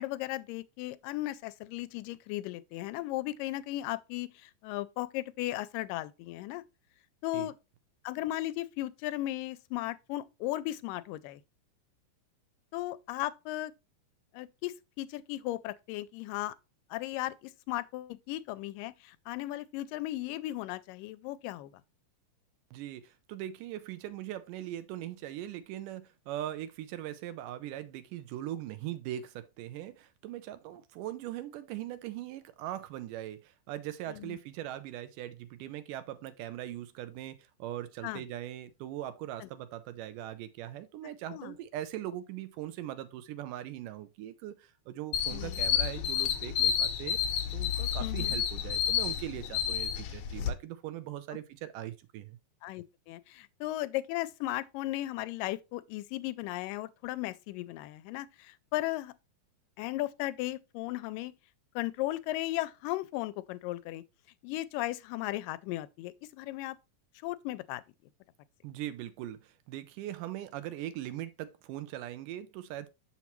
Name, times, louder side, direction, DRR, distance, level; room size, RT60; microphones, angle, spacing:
voice 1, 0.0-6.6 7.2-7.5 8.0-11.4 12.7-13.7 14.3-16.5 16.9-21.7 34.1-34.4 38.0-38.2 39.4-39.5 41.3-41.6 45.3-45.6 48.0-48.4 52.6-59.1 59.8-61.3 61.8-64.0 64.4-66.8 67.2-67.8, left 16 dB, 90° left, 2.2 m, -36 dB
voice 2, 22.7-47.2 47.5-52.4 68.6-72.9, right 12 dB, 80° right, 2.2 m, -40 dB
sound 1, 45.1-50.5, left 9 dB, 70° left, 1.8 m, -30 dB
7.0 x 5.8 x 3.0 m
omnidirectional pair, 3.8 m